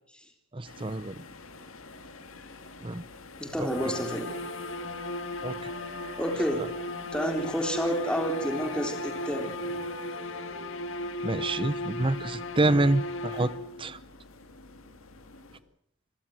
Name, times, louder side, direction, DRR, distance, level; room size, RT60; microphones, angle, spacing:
voice 1, 0.5-1.2 2.8-3.0 3.6-3.7 5.4-5.6 11.2-13.5 13.8-14.0, right 2 dB, 25° right, 0.8 m, -27 dB
sound 1, 0.6-15.6, left 3 dB, 90° left, 2.3 m, -49 dB
voice 2, 3.4-4.4 6.2-6.7 7.1-9.6, equal, 5° left, 3.6 m, -30 dB
sound 2, 3.7-13.9, left 1 dB, 70° left, 1.7 m, -36 dB
Wind instrument woodwind instrument, 3.7-7.4 8.2-10.8, right 1 dB, 55° right, 3.1 m, -47 dB
27.0 x 15.5 x 7.8 m
head